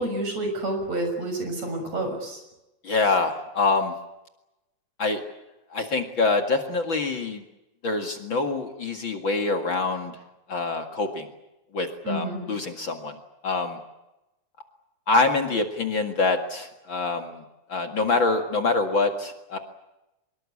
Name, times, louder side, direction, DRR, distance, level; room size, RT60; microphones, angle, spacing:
voice 1, 0.0-2.4 12.0-12.5, right 1 dB, 60° right, 5 dB, 7.6 m, -29 dB
voice 2, 2.8-3.9 5.0-5.2 5.7-7.4 7.8-10.2 10.5-11.3 11.7-13.2 13.4-13.8 15.1-17.4 17.7-19.6, left 3 dB, 45° left, 5 dB, 2.5 m, -25 dB
25.5 x 22.0 x 8.6 m, 0.94 s
omnidirectional pair, 3.3 m